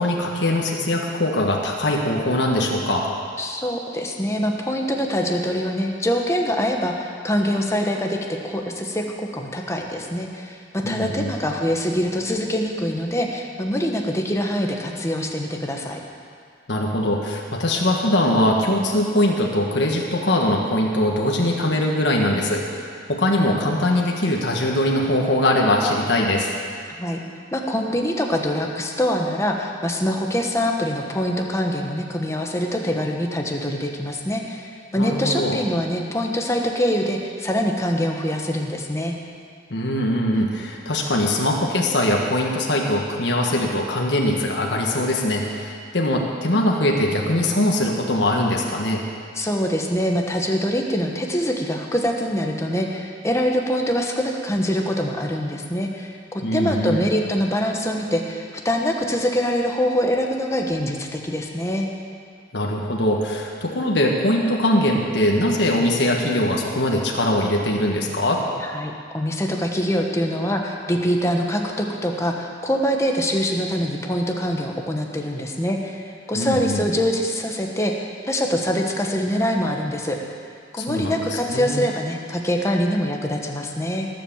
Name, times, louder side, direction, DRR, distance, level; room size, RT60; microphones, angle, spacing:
voice 1, 0.0-3.1 10.8-11.3 16.7-26.5 35.0-35.6 39.7-49.0 56.4-57.0 62.5-68.4 76.3-76.8 80.7-81.8, left 1 dB, 65° left, -1 dB, 1.5 m, -22 dB
voice 2, 3.4-16.0 27.0-27.2 27.5-39.1 49.3-61.9 68.6-80.2 80.7-84.1, equal, 15° left, 1 dB, 1.3 m, -24 dB
18.5 x 7.7 x 7.3 m, 2.2 s
head